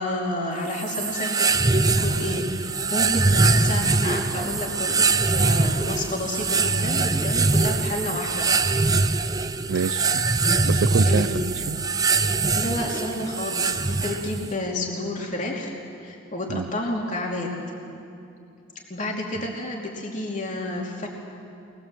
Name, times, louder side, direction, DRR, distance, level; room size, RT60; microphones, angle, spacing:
voice 1, 0.0-8.5 11.0-11.5 12.5-17.5 18.9-21.1, left 1 dB, 40° left, 2.7 m, -30 dB
sound 1, 0.7-14.5, right 3 dB, 20° right, 0.6 m, -23 dB
voice 2, 9.7-10.3 10.6-11.8 16.5-16.7, right 5 dB, 70° right, 0.5 m, -27 dB
23.5 x 20.5 x 7.7 m
head